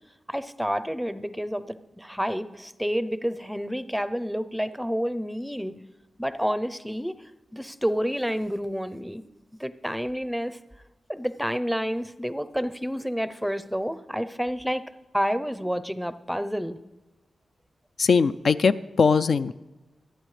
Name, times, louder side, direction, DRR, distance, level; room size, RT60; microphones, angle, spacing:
voice 1, 0.3-5.7 6.2-7.2 7.5-9.2 9.6-10.6 11.1-14.8 15.1-16.8, equal, ahead, 12 dB, 0.5 m, -29 dB
voice 2, 18.0-19.5, left 5 dB, 65° left, 12 dB, 0.3 m, -21 dB
26.5 x 9.0 x 3.2 m, 1.1 s
wide cardioid pair, 120°, 0 cm